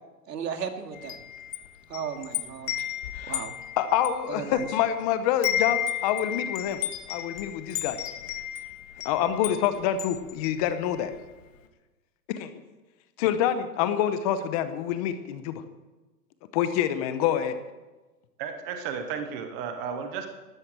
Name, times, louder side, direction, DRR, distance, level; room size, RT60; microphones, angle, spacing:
voice 1, 0.3-1.2 1.9-2.7 3.3-3.5 4.3-4.7, right 7 dB, 80° right, 5 dB, 2.6 m, -35 dB
Wind chime, 0.9-5.0 5.3-11.2, left 11 dB, 50° left, 1.8 m, -33 dB
voice 2, 3.8-6.8 7.1-8.0 9.0-11.1 12.3-12.5 13.2-15.6 16.5-17.5, left 10 dB, 25° left, 11 dB, 0.7 m, -26 dB
voice 3, 18.4-20.3, right 6 dB, 10° right, 6 dB, 0.4 m, -33 dB
13.0 x 13.0 x 7.5 m, 1.2 s
hypercardioid pair, 145°, 48 cm